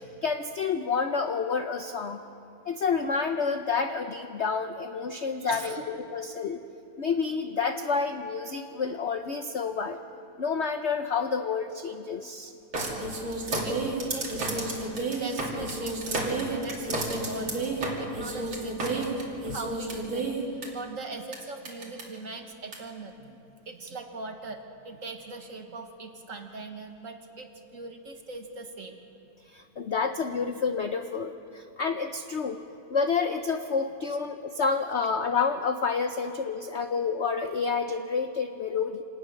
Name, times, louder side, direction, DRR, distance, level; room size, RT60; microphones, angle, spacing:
voice 1, 0.2-2.2 2.6-6.6 7.0-10.0 10.4-12.5 29.5-32.6 32.9-39.0, left 5 dB, 60° left, 7 dB, 0.7 m, -29 dB
voice 2, 5.4-5.9 7.3-7.4 12.2-12.3 13.6-14.7 15.2-29.0 34.1-34.2, right 3 dB, 45° right, 5 dB, 1.7 m, -41 dB
sound 1, 12.7-20.7 21.3-21.4 21.6-22.0 22.7-22.8, right 2 dB, 75° right, 3.6 m, -31 dB
26.0 x 18.5 x 6.5 m, 2.7 s
omnidirectional pair, 2.1 m